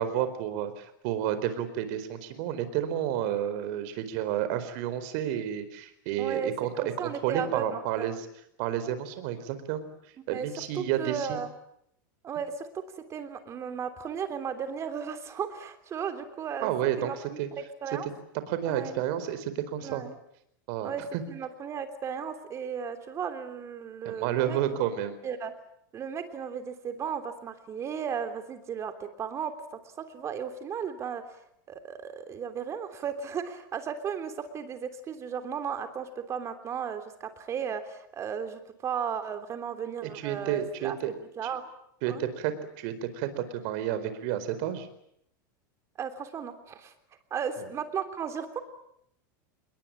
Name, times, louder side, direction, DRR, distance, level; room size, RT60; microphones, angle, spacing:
voice 1, 0.0-8.3 8.6-9.8 10.3-11.4 16.6-17.1 17.4-17.5 18.5-20.0 20.7-21.2 24.0-25.2 40.0-41.1 42.0-44.9 47.6-47.7, right 11 dB, 55° right, 12 dB, 4.5 m, -31 dB
voice 2, 6.2-6.5 6.8-8.1 10.3-10.5 10.7-11.5 12.2-16.7 17.0-18.1 18.7-19.0 19.8-20.1 20.8-24.6 25.2-25.5 25.9-31.4 31.7-41.6 42.0-42.2 46.0-46.9 47.3-48.6, right 7 dB, 25° right, 9 dB, 3.3 m, -35 dB
28.0 x 22.0 x 8.9 m, 0.73 s
supercardioid pair, 150°, 11 cm